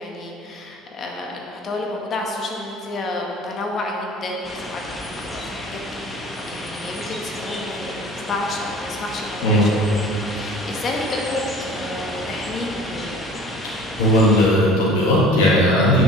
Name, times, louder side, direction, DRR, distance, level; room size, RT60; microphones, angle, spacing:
voice 1, 0.0-4.8 5.3-10.1 10.3-13.2, left 2 dB, 45° left, 0 dB, 1.7 m, -30 dB
sound 1, 4.4-14.5, left 1 dB, 15° left, 1.5 m, -32 dB
voice 2, 14.0-16.0, equal, 75° left, -5 dB, 1.6 m, -16 dB
9.1 x 6.5 x 5.6 m, 2.8 s
hypercardioid pair, 65°, 0 cm